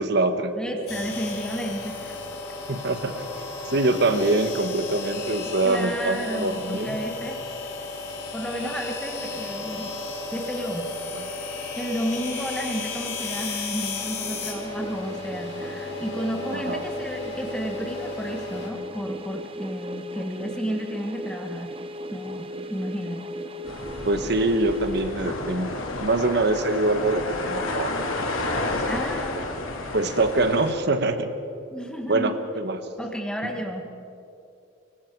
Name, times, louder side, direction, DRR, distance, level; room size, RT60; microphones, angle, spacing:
voice 1, 0.0-0.5 2.7-3.3 3.7-7.0 11.1-11.2 16.5-16.8 24.0-25.7 26.0-27.9 28.4-28.8 29.9-31.3 32.1-32.8, right 2 dB, 55° right, 9 dB, 1.3 m, -24 dB
voice 2, 0.6-2.2 5.6-7.4 8.3-9.9 10.3-10.9 11.8-21.7 22.1-23.3 28.8-29.5 31.7-32.3 33.0-33.9, equal, 5° left, 2 dB, 1.5 m, -32 dB
sound 1, 0.9-18.7, left 3 dB, 55° left, 4.3 m, -34 dB
sound 2, 13.9-25.8, equal, 25° right, 0.9 m, -37 dB
sound 3, 23.7-30.7, left 2 dB, 90° left, 2.7 m, -31 dB
24.5 x 23.5 x 4.7 m, 2.7 s
head